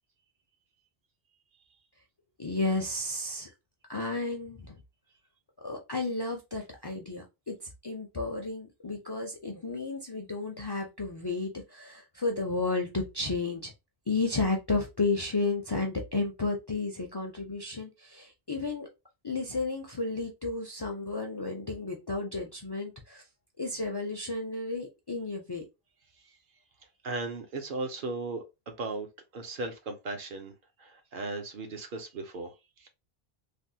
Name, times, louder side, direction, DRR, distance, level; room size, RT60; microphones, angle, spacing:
voice 1, 2.4-3.5 3.9-4.8 5.6-7.6 7.8-13.7 14.1-18.9 19.2-23.2 23.6-25.6, left 3 dB, 35° left, 0.4 m, -32 dB
voice 2, 27.0-29.1 29.3-30.5 30.8-32.9, right 3 dB, 60° right, 0.8 m, -37 dB
3.3 x 2.1 x 2.7 m
omnidirectional pair, 1.1 m